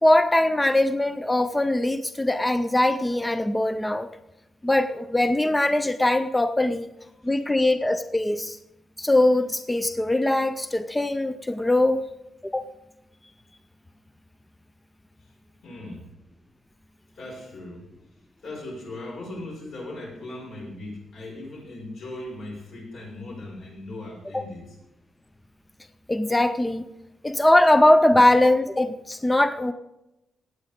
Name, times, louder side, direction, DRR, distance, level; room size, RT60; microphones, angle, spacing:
voice 1, 0.0-4.1 4.6-6.9 7.2-8.6 9.0-12.1 12.4-12.7 24.3-24.4 26.1-26.9 27.2-29.7, left 1 dB, 10° left, 10 dB, 0.4 m, -21 dB
voice 2, 15.6-16.1 17.2-17.9 18.4-24.8, left 2 dB, 75° left, -2 dB, 5.3 m, -38 dB
18.5 x 8.3 x 3.6 m, 0.91 s
wide cardioid pair, 165°, 0 cm